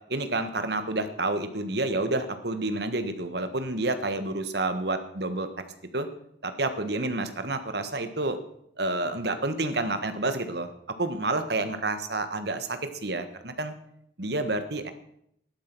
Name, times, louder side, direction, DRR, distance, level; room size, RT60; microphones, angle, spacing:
voice 1, 0.1-5.5 5.9-6.1 6.4-8.4 8.8-10.7 11.0-13.7 14.2-14.9, right 2 dB, 60° right, 9 dB, 1.5 m, -29 dB
13.5 x 11.5 x 6.1 m, 0.73 s
head